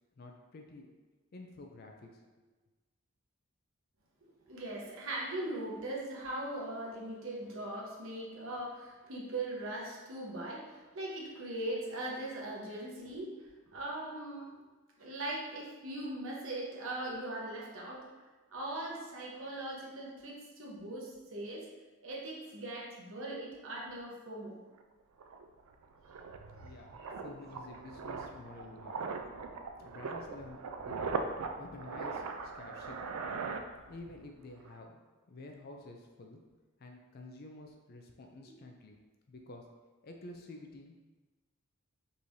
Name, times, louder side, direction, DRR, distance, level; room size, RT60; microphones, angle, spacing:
voice 1, 0.2-0.9 1.3-2.2 26.6-29.0 29.8-31.0 31.6-33.1 33.9-34.9 35.3-36.4 36.8-39.0 39.3-39.7 40.0-41.0, left 2 dB, 45° left, 2 dB, 0.4 m, -50 dB
voice 2, 4.5-14.5 15.0-18.1 18.5-21.7 22.0-24.6 26.6-26.7 27.0-27.2, right 1 dB, 65° right, -3 dB, 1.0 m, -40 dB
sound 1, 24.8-24.9 25.2-34.3 34.5-34.8, right 4 dB, 85° right, 0.4 m, -40 dB
5.3 x 3.2 x 2.6 m, 1.3 s
head